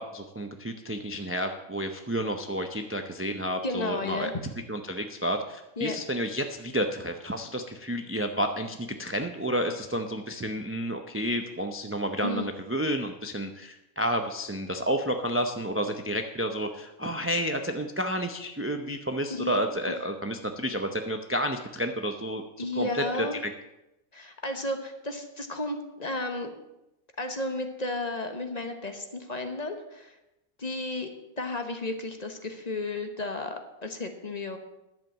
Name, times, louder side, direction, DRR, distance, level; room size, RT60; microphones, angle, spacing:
voice 1, 0.0-4.3 4.7-23.3, equal, 20° right, 5 dB, 0.4 m, -30 dB
voice 2, 3.6-4.3 5.8-6.0 12.2-12.5 19.3-19.6 19.9-20.0 22.6-23.4 24.1-26.5 27.2-30.2 30.6-31.1 31.4-34.6, left 2 dB, 30° left, 6 dB, 1.1 m, -33 dB
11.0 x 7.4 x 7.3 m, 0.92 s
omnidirectional pair, 1.5 m